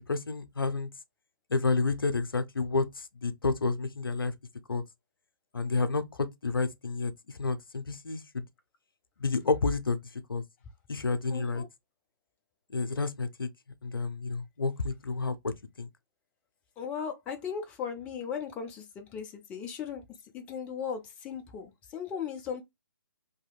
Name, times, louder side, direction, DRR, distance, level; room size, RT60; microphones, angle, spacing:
voice 1, 0.1-0.9 1.5-4.3 4.7-4.8 5.5-7.1 7.4-8.4 9.2-10.0 10.3-10.4 10.9-11.6 12.7-13.5 13.8-15.9, left 3 dB, 80° left, 0.5 m, -30 dB
voice 2, 11.3-11.7 16.8-20.0 20.3-22.6, left 7 dB, 10° left, 0.4 m, -37 dB
2.7 x 2.7 x 2.2 m
figure-of-eight pair, 135°, 12 cm